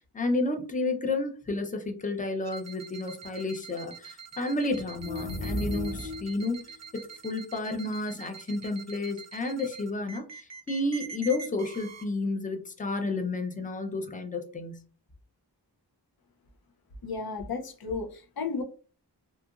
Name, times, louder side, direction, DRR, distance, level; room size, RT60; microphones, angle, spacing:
voice 1, 0.1-14.8, left 2 dB, 20° left, 5 dB, 0.5 m, -31 dB
sound 1, 2.4-12.0, right 5 dB, 40° right, 0.5 m, -45 dB
sound 2, 4.9-6.4, left 1 dB, 90° left, 1.0 m, -34 dB
voice 2, 17.0-18.6, left 4 dB, 60° left, 4 dB, 0.6 m, -33 dB
2.8 x 2.5 x 2.4 m, 0.37 s
wide cardioid pair, 50°, 42 cm